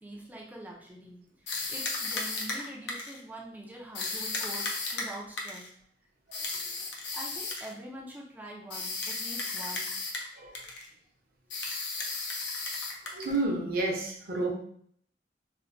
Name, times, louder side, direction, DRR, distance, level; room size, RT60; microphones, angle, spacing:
voice 1, 0.0-5.7 7.1-10.0 12.8-12.9, right 1 dB, 10° right, -2 dB, 0.4 m, -45 dB
sound 1, 1.5-3.2 3.9-5.7 6.3-7.7 8.7-10.3 10.5-10.9 11.5-13.4, left 3 dB, 65° left, 0.6 m, -34 dB
voice 2, 6.3-6.8 10.4-10.6 13.0-14.5, right 2 dB, 55° right, 0 dB, 0.7 m, -32 dB
4.2 x 2.1 x 2.5 m, 0.62 s
head